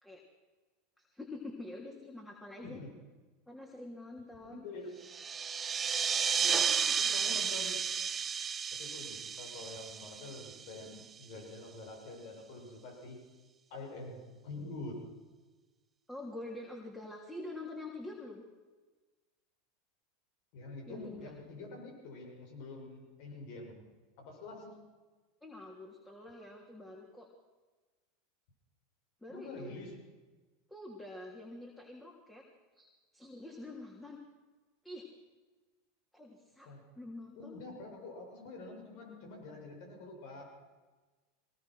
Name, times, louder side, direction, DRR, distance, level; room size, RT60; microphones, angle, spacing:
voice 1, 1.0-2.8 3.5-4.7 6.7-6.8 7.1-7.4 16.1-18.4 20.9-21.3 25.4-27.3 29.2-29.8 30.7-32.4 32.7-34.2 34.8-35.1 36.1-36.7 36.9-37.6, left 2 dB, 5° left, -1 dB, 3.2 m, -46 dB
voice 2, 4.4-5.0 6.4-7.8 8.8-13.2 13.7-15.0 20.5-23.8 24.2-24.8 29.3-29.9 36.6-36.8 37.3-40.5, left 2 dB, 60° left, 2 dB, 6.5 m, -46 dB
sound 1, 5.0-11.2, right 7 dB, 25° right, 0.8 m, -33 dB
22.5 x 18.5 x 6.3 m, 1.3 s
hypercardioid pair, 90°, 0 cm